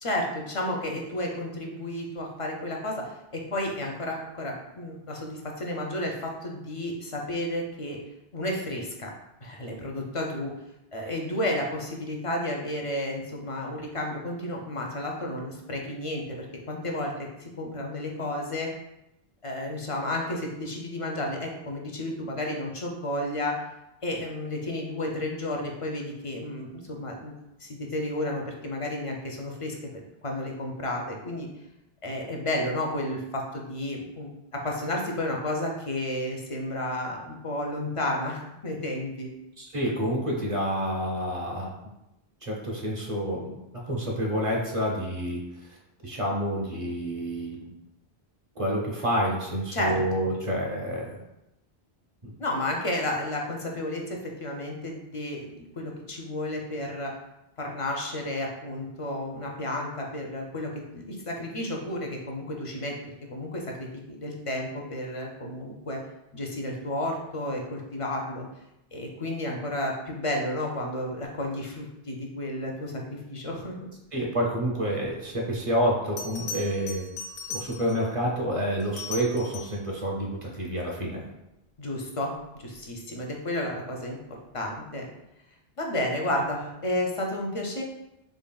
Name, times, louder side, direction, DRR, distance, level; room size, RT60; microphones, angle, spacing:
voice 1, 0.0-8.0 8.3-9.1 9.4-10.5 10.9-18.7 19.4-23.6 24.0-27.3 27.6-29.8 30.2-31.5 32.0-39.3 49.7-50.0 52.4-57.1 57.6-63.0 63.3-66.0 66.3-68.5 68.9-73.9 81.8-85.1 85.8-87.8, left 1 dB, 45° left, 0 dB, 0.4 m, -32 dB
voice 2, 39.6-41.7 42.4-43.6 43.8-45.4 46.0-47.7 48.6-51.2 52.2-52.3 74.1-77.1 77.5-81.3, equal, 35° right, -2 dB, 0.7 m, -28 dB
Bell, 76.2-78.1 78.8-79.9 82.6-82.8, left 4 dB, 75° left, 0.9 m, -38 dB
3.7 x 3.7 x 2.2 m, 0.90 s
omnidirectional pair, 1.0 m